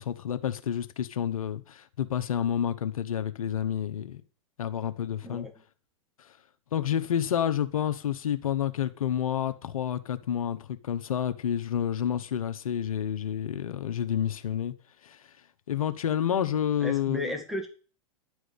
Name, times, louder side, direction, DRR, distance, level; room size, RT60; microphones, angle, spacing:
voice 1, 0.0-4.2 4.6-5.5 6.2-6.3 6.7-14.7 15.0-15.3 15.7-17.4, left 9 dB, 80° left, 1.1 m, -29 dB
voice 2, 16.8-17.7, left 1 dB, ahead, 1.8 m, -34 dB
10.5 x 4.9 x 8.3 m
hypercardioid pair, 110°, 18 cm